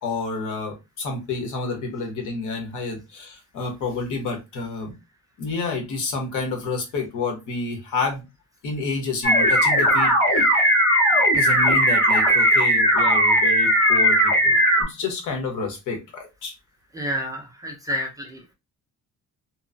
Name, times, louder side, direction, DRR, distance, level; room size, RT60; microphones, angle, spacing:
voice 1, 0.0-5.0 5.4-8.3 8.6-10.1 11.3-16.5, left 3 dB, 75° left, 2 dB, 1.0 m, -29 dB
sound 1, 9.2-14.8, equal, 35° left, 1.7 m, -18 dB
voice 2, 16.9-18.5, equal, 10° right, 0 dB, 0.3 m, -30 dB
2.9 x 2.0 x 2.5 m, 0.25 s
cardioid pair, 170°, 31 cm